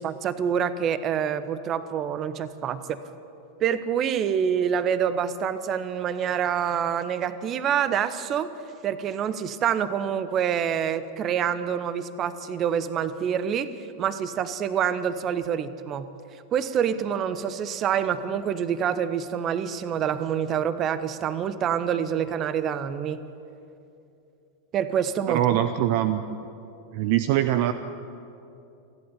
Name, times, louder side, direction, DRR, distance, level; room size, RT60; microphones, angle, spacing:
voice 1, 0.0-3.0 3.6-8.5 8.8-13.7 14.0-16.1 16.5-23.2 24.7-25.4, right 8 dB, 30° right, 14 dB, 1.1 m, -26 dB
voice 2, 25.3-26.2 26.9-27.7, right 12 dB, 45° right, 11 dB, 0.7 m, -23 dB
28.5 x 11.5 x 9.3 m, 2.7 s
figure-of-eight pair, 90°, 0 cm